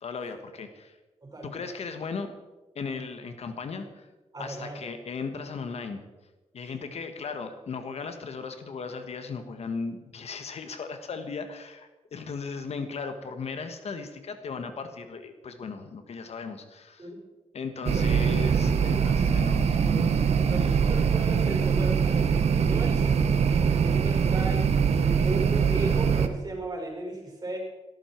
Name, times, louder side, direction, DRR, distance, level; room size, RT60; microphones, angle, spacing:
voice 1, 0.0-1.0 1.4-2.3 2.8-4.1 4.4-6.0 6.5-17.1 17.5-20.3, left 5 dB, 65° left, 8 dB, 1.6 m, -37 dB
voice 2, 1.2-1.6 4.3-4.9 6.6-6.8 17.0-17.3 18.0-18.1 20.3-22.2 22.6-27.6, right 2 dB, 35° right, 1 dB, 5.9 m, -36 dB
sound 1, 17.8-26.3, right 6 dB, 70° right, 1.3 m, -23 dB
17.5 x 13.5 x 4.7 m, 1.1 s
cardioid pair, 80°, 11 cm